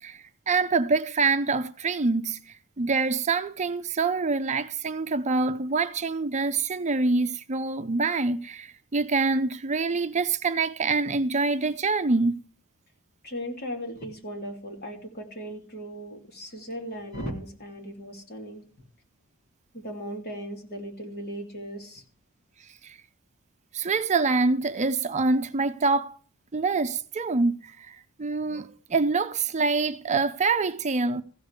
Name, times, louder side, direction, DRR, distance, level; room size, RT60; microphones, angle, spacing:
voice 1, 0.0-12.4 22.8-23.0 23.7-26.2 26.5-31.2, right 3 dB, 35° right, 0.6 m, -26 dB
voice 2, 13.2-18.6 19.7-22.0, equal, 50° left, 2.8 m, -37 dB
15.0 x 5.3 x 8.1 m
head